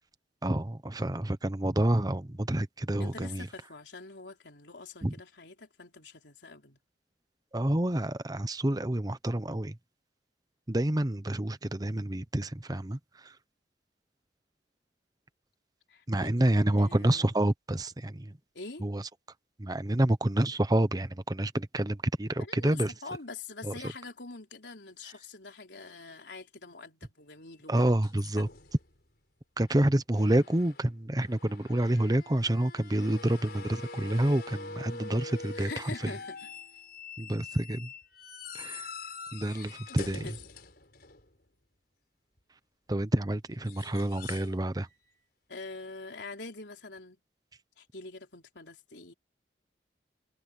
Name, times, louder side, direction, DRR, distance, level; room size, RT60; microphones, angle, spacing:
voice 1, 0.4-3.5 5.0-5.1 7.5-9.8 10.7-13.3 16.1-18.4 18.8-19.0 19.6-22.9 23.6-23.7 27.7-28.5 29.6-35.7 37.2-37.9 38.5-38.9 39.3-40.2 42.9-44.9, right 1 dB, 20° right, 0.9 m, -28 dB
voice 2, 3.0-6.8 15.9-17.4 18.5-18.8 22.4-27.9 28.1-28.5 35.5-36.5 39.9-40.0 40.2-40.4 45.5-47.2 47.8-49.1, left 3 dB, 80° left, 3.8 m, -45 dB
squeaky-door, 27.7-29.0 29.7-29.8 30.1-30.9 31.2-41.5 43.5-44.6 44.9-45.2 47.0-47.1, left 4 dB, 60° left, 5.1 m, -45 dB
head